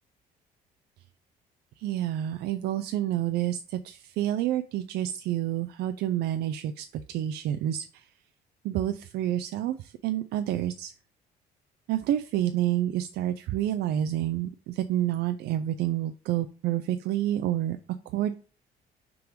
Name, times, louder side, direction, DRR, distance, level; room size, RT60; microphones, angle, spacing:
voice 1, 1.8-8.0 8.6-10.9 11.9-17.8 18.1-18.3, right 12 dB, 75° right, 9 dB, 0.5 m, -29 dB
5.7 x 3.9 x 5.0 m, 0.38 s
cardioid pair, 110°, 17 cm